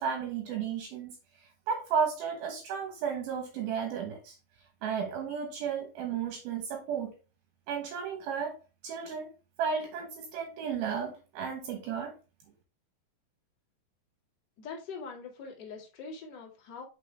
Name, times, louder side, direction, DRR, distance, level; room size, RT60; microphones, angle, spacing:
voice 1, 0.0-4.4 4.8-7.1 7.7-8.6 8.8-9.3 9.6-12.1, right 6 dB, 70° right, 3 dB, 2.6 m, -33 dB
voice 2, 14.6-16.8, left 4 dB, 40° left, -2 dB, 1.6 m, -43 dB
5.8 x 5.8 x 3.3 m, 0.32 s
omnidirectional pair, 5.0 m